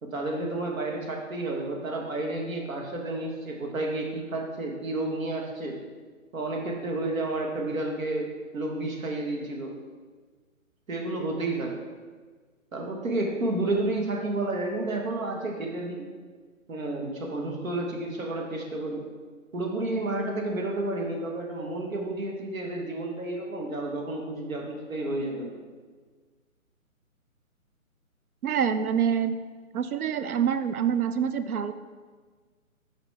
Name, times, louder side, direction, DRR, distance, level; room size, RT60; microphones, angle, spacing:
voice 1, 0.0-5.8 6.3-9.7 10.9-11.8 12.7-16.1 16.7-19.0 19.5-25.6, right 2 dB, 70° right, 0 dB, 1.4 m, -31 dB
voice 2, 28.4-29.4 29.7-31.7, right 8 dB, 85° right, 11 dB, 0.6 m, -26 dB
6.2 x 5.0 x 3.3 m, 1.5 s
hypercardioid pair, 150°, 42 cm